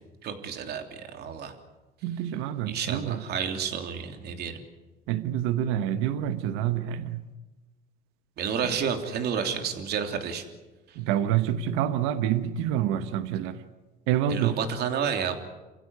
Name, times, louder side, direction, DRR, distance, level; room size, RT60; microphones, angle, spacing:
voice 1, 0.2-1.5 2.7-4.6 8.4-10.4 10.9-11.0 14.3-15.4, right 7 dB, 55° right, 3.2 m, -30 dB
voice 2, 2.0-3.2 5.1-7.2 10.9-13.6 14.1-14.6, right 11 dB, 80° right, 1.3 m, -27 dB
28.5 x 16.0 x 9.7 m
cardioid pair, 125°, 20 cm